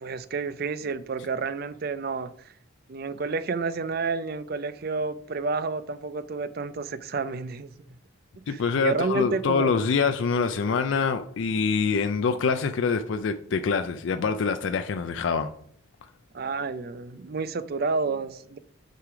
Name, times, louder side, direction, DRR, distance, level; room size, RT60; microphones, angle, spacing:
voice 1, 0.0-2.5 2.9-7.7 8.5-9.7 16.3-18.6, right 4 dB, 45° right, 13 dB, 0.4 m, -30 dB
voice 2, 8.5-15.5, left 5 dB, 60° left, 8 dB, 0.4 m, -25 dB
6.7 x 4.9 x 4.9 m, 0.63 s
head